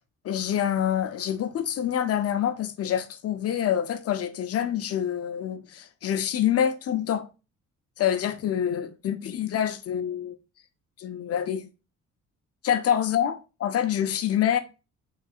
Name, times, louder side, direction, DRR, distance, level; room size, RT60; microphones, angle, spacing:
voice 1, 0.2-7.3 8.0-10.3 11.0-11.7 12.6-14.6, left 9 dB, 50° left, 0.5 m, -26 dB
3.6 x 3.3 x 2.4 m
cardioid pair, 90°, 30 cm